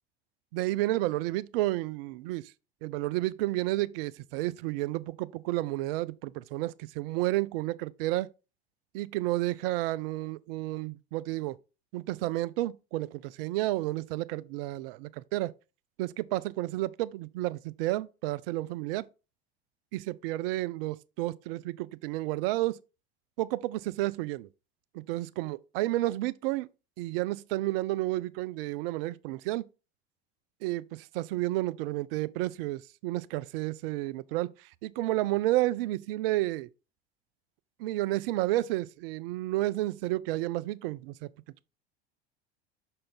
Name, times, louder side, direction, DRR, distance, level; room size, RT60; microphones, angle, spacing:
voice 1, 0.5-2.4 2.8-8.3 8.9-11.6 11.9-15.5 16.0-19.1 19.9-22.8 23.4-24.5 24.9-26.7 27.0-29.7 30.6-34.5 34.8-36.7 37.8-41.3, right 17 dB, 60° right, 0.5 m, -31 dB
6.3 x 4.4 x 3.8 m
hypercardioid pair, 80°, 32 cm